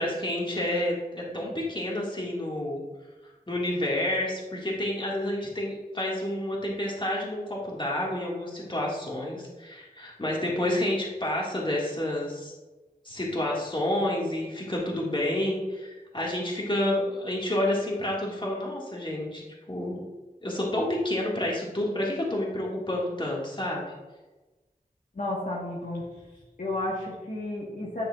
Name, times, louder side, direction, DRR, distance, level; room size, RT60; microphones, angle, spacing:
voice 1, 0.0-2.8 3.5-12.5 13.0-20.0 20.4-23.9, left 1 dB, 30° left, -3 dB, 1.9 m, -29 dB
voice 2, 25.1-26.0 26.6-28.1, left 1 dB, 55° left, -5 dB, 1.5 m, -32 dB
9.4 x 6.7 x 2.4 m, 1.1 s
wide cardioid pair, 55°, 16 cm